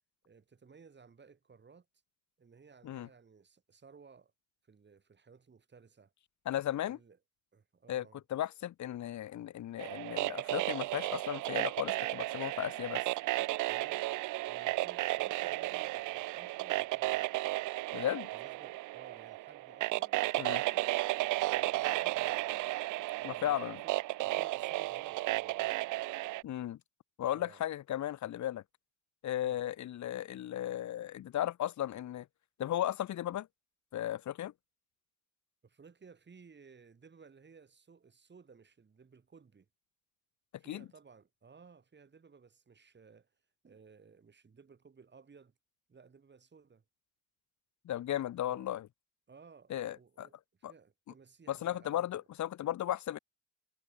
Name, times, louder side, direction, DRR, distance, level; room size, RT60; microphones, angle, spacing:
voice 1, 0.2-1.9 2.4-4.3 4.6-6.1 6.9-7.2 7.5-8.2 13.7-14.1 14.5-17.4 18.3-20.9 21.5-22.5 23.2-25.9 27.3-27.6 29.4-29.6 35.6-39.7 40.6-43.3 43.6-45.5 45.9-46.8 48.4-48.7 49.3-52.2, right 5 dB, 35° right, 7.7 m, -58 dB
voice 2, 6.4-7.0 7.9-8.0 8.3-13.0 17.9-18.3 20.4-20.6 23.2-23.8 26.4-26.8 27.2-28.6 29.2-32.3 32.6-33.5 33.9-34.5 40.7-40.8 47.8-48.9 49.7-50.3 50.6-50.7 51.5-53.2, left 12 dB, 70° left, 1.6 m, -35 dB
sound 1, 9.8-26.4, right 19 dB, 80° right, 0.5 m, -34 dB
cardioid pair, 90°, 30 cm